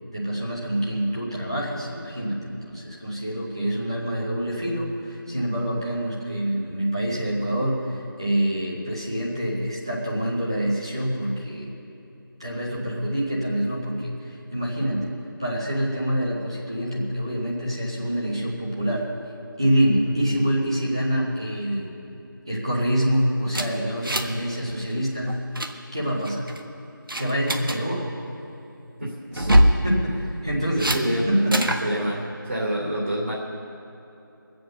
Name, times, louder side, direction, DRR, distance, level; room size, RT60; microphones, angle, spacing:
voice 1, 0.1-11.7 12.4-15.1 15.4-19.1 19.6-21.9 22.5-25.4 25.9-26.5 27.2-28.1 29.8-31.0 31.3-31.6, equal, 15° right, -5 dB, 1.1 m, -26 dB
sound 1, 23.5-24.4 24.7-24.9 25.3-25.7 26.2-26.6 27.1-27.8 29.3-29.8 30.8-31.0 31.5-31.8, equal, 70° right, 1.4 m, -21 dB
voice 2, 29.0-29.7 30.8-31.5 31.8-33.3, equal, 40° right, -5 dB, 2.9 m, -28 dB
22.0 x 7.8 x 6.8 m, 2.9 s
figure-of-eight pair, 180°, 12 cm